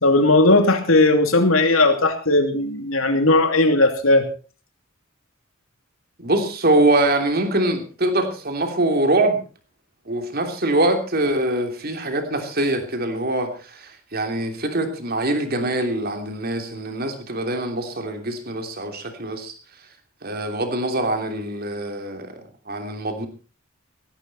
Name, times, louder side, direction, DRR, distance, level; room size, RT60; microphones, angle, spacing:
voice 1, 0.0-4.2, left 2 dB, 85° left, 6 dB, 2.8 m, -17 dB
voice 2, 6.2-9.4 10.1-19.5 20.2-22.4 22.7-23.3, right 2 dB, 50° right, 6 dB, 3.1 m, -23 dB
17.0 x 15.5 x 4.2 m, 0.36 s
head